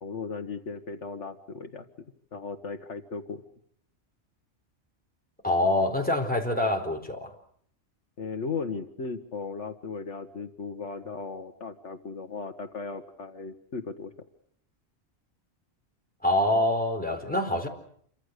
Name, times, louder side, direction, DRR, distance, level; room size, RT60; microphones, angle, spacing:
voice 1, 0.0-1.9 2.3-3.4 8.2-14.1, left 4 dB, 70° left, 7 dB, 1.7 m, -36 dB
voice 2, 5.4-7.3 16.2-17.7, left 1 dB, 5° left, 2 dB, 4.2 m, -25 dB
28.0 x 25.0 x 6.6 m, 0.64 s
omnidirectional pair, 1.3 m